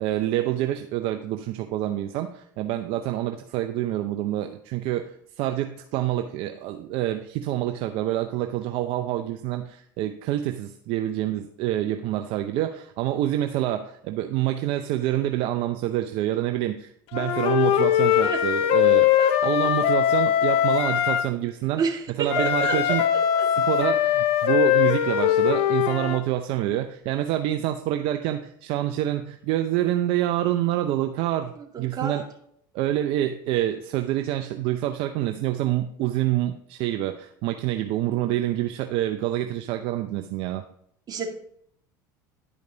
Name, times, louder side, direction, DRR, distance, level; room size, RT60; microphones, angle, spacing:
voice 1, 0.0-19.1 19.4-21.8 22.2-23.0 23.5-32.2 32.7-40.6, right 13 dB, 60° right, 7 dB, 0.6 m, -27 dB
Wind instrument woodwind instrument, 17.1-21.3 22.3-26.2, left 11 dB, 60° left, 0.8 m, -21 dB
voice 2, 21.8-23.0 23.4-23.5 31.6-31.7 31.9-32.2 41.1-41.3, right 5 dB, 35° right, 1 dB, 2.1 m, -28 dB
11.0 x 5.2 x 3.9 m, 0.69 s
hypercardioid pair, 85°, 11 cm